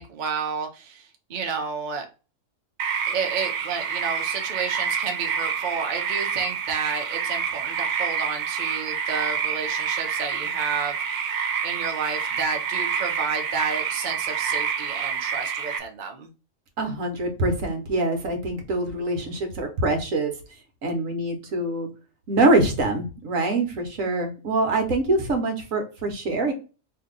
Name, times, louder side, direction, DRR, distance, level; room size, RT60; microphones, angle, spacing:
voice 1, 0.0-2.1 3.1-16.3, right 5 dB, 45° right, 3 dB, 0.6 m, -31 dB
sound 1, 2.8-15.8, right 7 dB, 80° right, 1.1 m, -28 dB
voice 2, 16.8-20.3 20.8-21.9 22.3-26.5, right 2 dB, 65° right, 4 dB, 1.3 m, -24 dB
2.9 x 2.6 x 3.6 m, 0.32 s
omnidirectional pair, 1.6 m